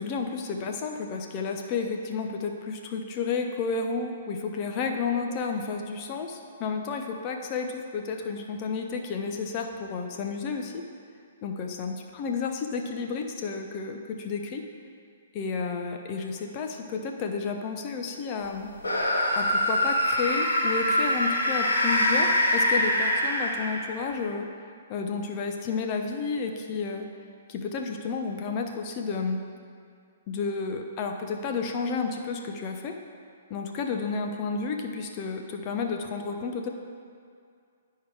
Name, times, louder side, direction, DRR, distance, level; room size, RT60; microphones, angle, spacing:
voice 1, 0.0-10.8 11.4-14.6 15.3-18.7 19.3-24.5 24.9-27.1 27.5-29.4 30.3-33.0 33.5-36.7, left 5 dB, 35° left, 4 dB, 0.8 m, -31 dB
sound 1, 18.8-24.0, left 1 dB, 85° left, 1.8 m, -24 dB
9.9 x 4.7 x 4.9 m, 2.3 s
hypercardioid pair, 130°, 0 cm